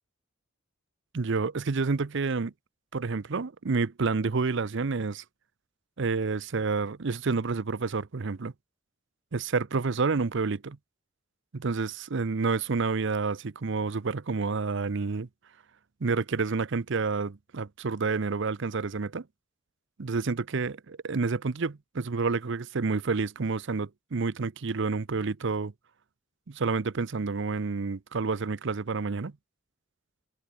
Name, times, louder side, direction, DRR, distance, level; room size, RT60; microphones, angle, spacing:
voice 1, 1.1-2.5 2.9-5.2 6.0-8.5 9.3-10.8 11.5-15.3 16.0-19.3 20.0-25.7 26.5-29.3, right 4 dB, 65° right, 0.7 m, -29 dB
head